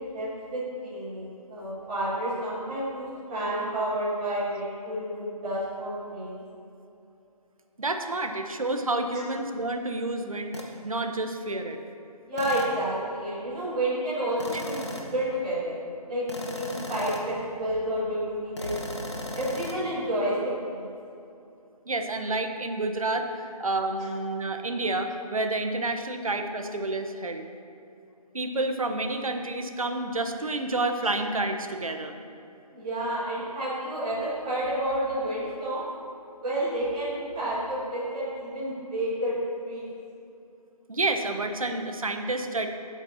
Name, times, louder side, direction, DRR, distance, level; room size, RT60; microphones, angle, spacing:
voice 1, 0.0-6.4 9.1-9.2 12.3-15.8 16.1-18.8 19.3-20.9 24.0-24.1 31.0-31.1 32.7-35.8 36.4-39.3 39.6-39.9, right 1 dB, 10° right, -15 dB, 2.4 m, -30 dB
voice 2, 7.8-11.8 14.5-14.6 21.9-23.3 23.6-27.5 28.3-32.1 40.9-42.7, right 2 dB, 60° right, 6 dB, 1.0 m, -29 dB
sound 1, 10.5-10.8 12.4-12.9 14.4-15.2 16.3-17.4 18.6-19.8, left 1 dB, 45° left, 1.0 m, -36 dB
15.0 x 8.3 x 2.9 m, 2.7 s
figure-of-eight pair, 175°, 21 cm